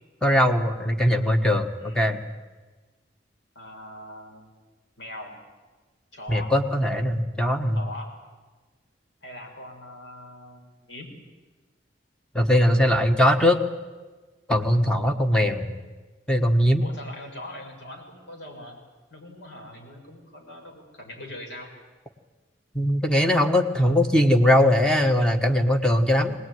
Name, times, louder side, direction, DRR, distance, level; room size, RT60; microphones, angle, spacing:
voice 1, 0.2-2.2 6.3-7.8 12.3-13.6 14.5-15.8 16.3-16.8 22.7-26.3, left 1 dB, 5° left, 4 dB, 1.4 m, -20 dB
voice 2, 3.6-4.6 5.0-5.4 6.1-6.5 7.7-8.1 9.2-11.1 16.8-18.8 19.1-21.7, left 1 dB, 70° left, 1 dB, 5.7 m, -41 dB
22.0 x 19.0 x 9.4 m, 1.3 s
head